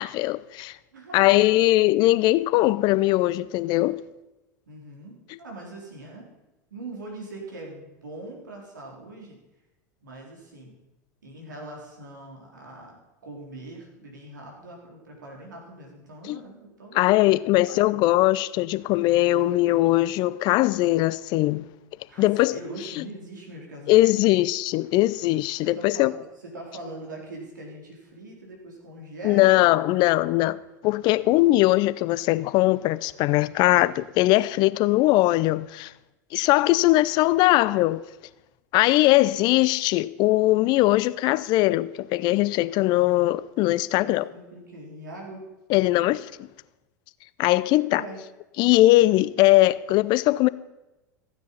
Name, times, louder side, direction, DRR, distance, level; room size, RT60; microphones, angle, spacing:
voice 1, 0.0-0.8 1.1-4.0 16.3-16.4 16.9-21.6 22.2-22.5 23.9-26.1 29.2-30.6 30.8-35.9 36.3-38.0 38.7-44.3 45.7-46.3 47.4-48.0 48.6-50.5, left 17 dB, 50° left, 0.6 m, -20 dB
voice 2, 0.9-1.3 4.7-6.3 6.7-9.4 10.0-10.7 11.2-17.0 17.7-17.8 22.1-24.1 25.6-26.1 26.4-30.0 44.0-45.4 47.7-48.2, right 2 dB, 85° right, 4.0 m, -42 dB
15.0 x 9.3 x 5.6 m
hypercardioid pair, 85°, 10 cm